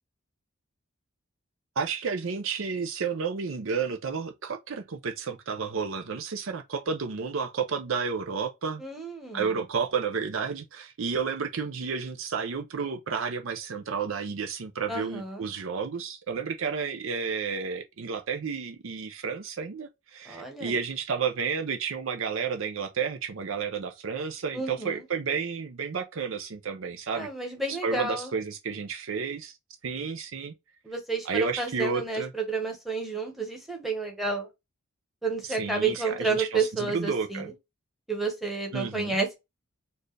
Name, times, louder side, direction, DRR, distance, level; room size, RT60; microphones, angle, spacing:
voice 1, 1.8-8.8 9.3-27.3 27.7-29.5 29.8-30.5 31.3-32.3 35.6-37.5 38.7-39.2, right 5 dB, 70° right, 0.5 m, -31 dB
voice 2, 8.8-9.5 14.9-15.4 20.2-20.8 24.5-25.0 27.1-28.3 30.8-34.5 35.2-37.5 38.1-39.3, right 4 dB, ahead, 1.1 m, -30 dB
4.5 x 2.4 x 3.2 m
head